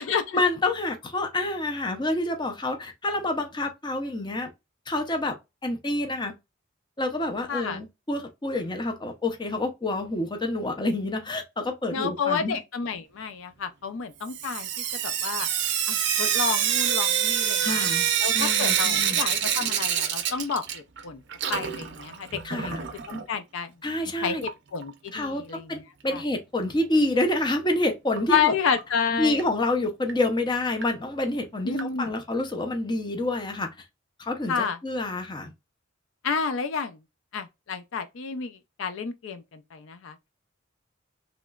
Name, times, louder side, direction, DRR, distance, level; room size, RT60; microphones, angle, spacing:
voice 1, 0.3-4.5 4.9-5.4 5.6-6.3 7.0-12.6 17.6-18.1 18.3-19.2 22.4-22.8 23.8-24.4 25.1-28.5 29.1-33.7 34.2-35.5, left 2 dB, 20° left, 0.6 m, -28 dB
voice 2, 7.5-7.8 11.9-14.7 15.0-15.5 15.9-17.9 18.2-21.2 21.5-23.7 24.2-25.8 26.1-26.2 28.3-29.4 31.6-32.1 34.5-34.8 36.2-37.0 37.3-40.2, left 6 dB, 70° left, 0.4 m, -30 dB
Sink (filling or washing) / Drip, 14.3-21.0 21.3-23.2 24.4-24.5 24.8-24.9 25.2-25.3 28.2-28.3 28.8-28.9 29.4-29.5 30.1-30.2 30.8-30.9 31.8-31.9, right 9 dB, 55° right, 0.5 m, -26 dB
3.1 x 2.9 x 2.3 m
head